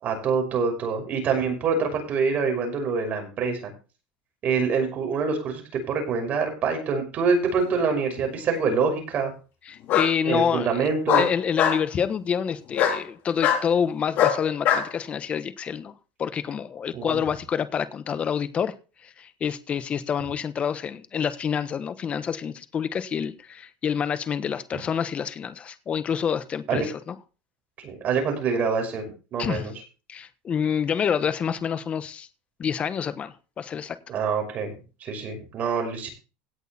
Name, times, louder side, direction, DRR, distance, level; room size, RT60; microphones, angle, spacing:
voice 1, 0.0-3.7 4.4-9.3 10.3-11.3 16.9-17.2 26.7-26.9 27.8-29.7 34.1-34.7 35.0-36.1, right 5 dB, 35° right, 3 dB, 5.7 m, -25 dB
Bark, 7.7-8.4 9.9-10.1 11.1-11.8 12.7-13.0 13.4-13.6 14.2-14.9, left 9 dB, 50° left, 3.7 m, -21 dB
voice 2, 9.7-10.9 11.2-15.9 16.2-18.7 19.0-27.2 29.4-29.7 30.1-32.3 32.6-34.0, left 7 dB, 30° left, 12 dB, 1.2 m, -27 dB
17.5 x 6.5 x 4.4 m, 0.34 s
supercardioid pair, 130°, 4 cm